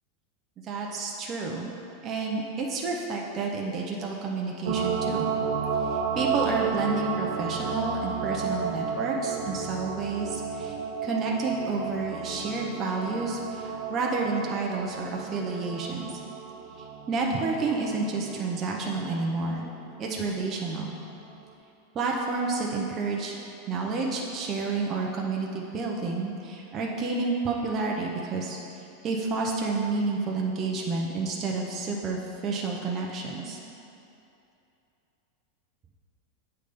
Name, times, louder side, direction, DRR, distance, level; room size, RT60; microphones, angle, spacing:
voice 1, 0.7-1.7 2.0-5.3 5.8-10.8 11.0-16.1 16.8-19.7 20.0-21.0 21.9-23.4 23.7-28.6 29.0-33.6, right 3 dB, 30° right, -1 dB, 0.6 m, -30 dB
sound 1, 4.7-20.4 20.7-20.8, right 6 dB, 75° right, 0.6 m, -32 dB
8.2 x 3.3 x 5.2 m, 2.8 s
supercardioid pair, 145°, 0 cm